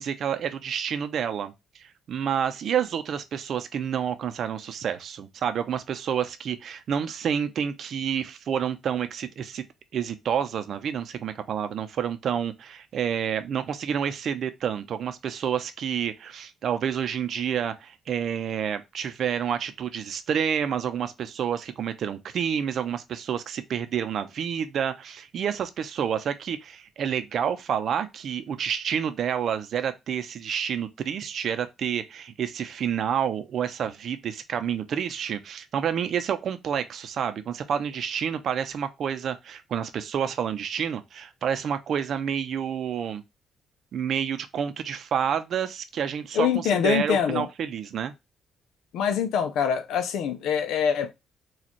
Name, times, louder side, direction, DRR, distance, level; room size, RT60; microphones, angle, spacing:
voice 1, 0.0-9.6 9.9-43.2 43.9-48.1, right 8 dB, 65° right, 0.6 m, -29 dB
voice 2, 46.3-47.5 48.9-51.1, left 7 dB, 85° left, 0.5 m, -24 dB
4.2 x 2.4 x 2.9 m
cardioid pair, 90°, 0 cm